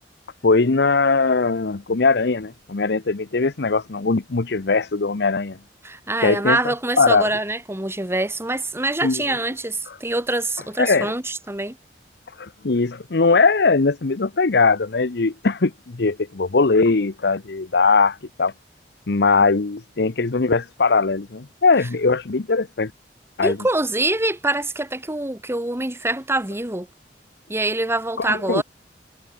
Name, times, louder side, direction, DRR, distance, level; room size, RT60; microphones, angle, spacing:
voice 1, 0.4-5.6 6.2-7.3 9.0-9.2 9.9-10.0 10.8-11.1 12.4-18.5 19.1-22.9 23.4-23.6 28.2-28.6, left 4 dB, 65° left, 0.8 m, -20 dB
voice 2, 5.8-11.8 23.4-26.9 27.5-28.6, right 2 dB, 15° right, 1.9 m, -25 dB
head